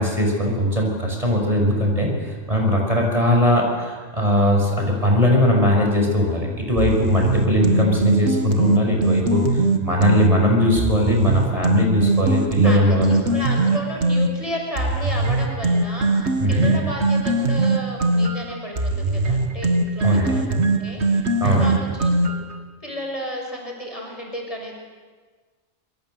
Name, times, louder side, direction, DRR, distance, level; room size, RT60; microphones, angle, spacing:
voice 1, 0.0-13.2 16.4-16.7 20.0-20.4 21.4-21.8, equal, 30° right, 0 dB, 5.9 m, -20 dB
sound 1, 6.8-10.3 10.8-14.3 14.8-22.6, right 2 dB, 70° right, 2.1 m, -21 dB
voice 2, 12.6-22.4 22.8-24.7, left 1 dB, 30° left, 0 dB, 6.4 m, -33 dB
27.0 x 24.0 x 7.9 m, 1.4 s
omnidirectional pair, 1.2 m